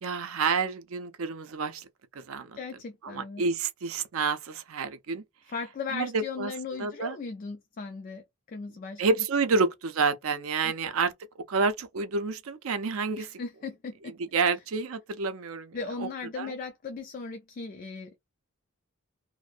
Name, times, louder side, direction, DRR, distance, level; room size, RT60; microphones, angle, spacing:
voice 1, 0.0-1.9 2.1-2.6 3.0-5.2 5.9-6.5 6.8-7.2 9.0-11.1 11.5-13.4 14.3-16.1 16.4-16.6, right 4 dB, 70° right, 0.5 m, -29 dB
voice 2, 2.5-3.4 5.5-9.0 10.6-10.7 13.2-14.1 15.7-18.2, left 4 dB, 40° left, 0.3 m, -37 dB
2.5 x 2.0 x 2.4 m
head